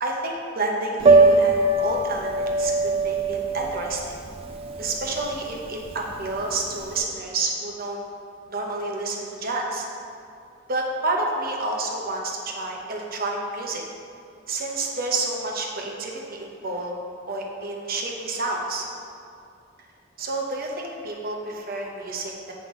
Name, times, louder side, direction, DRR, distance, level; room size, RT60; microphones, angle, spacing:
voice 1, 0.0-4.2 4.8-8.0 8.5-9.9 10.7-13.8 14.5-16.9 17.3-18.8 20.2-22.3, right 2 dB, 50° right, 0 dB, 0.9 m, -29 dB
Piano, 1.0-6.9, right 3 dB, 30° right, 0.4 m, -21 dB
6.7 x 5.5 x 3.7 m, 2.5 s
head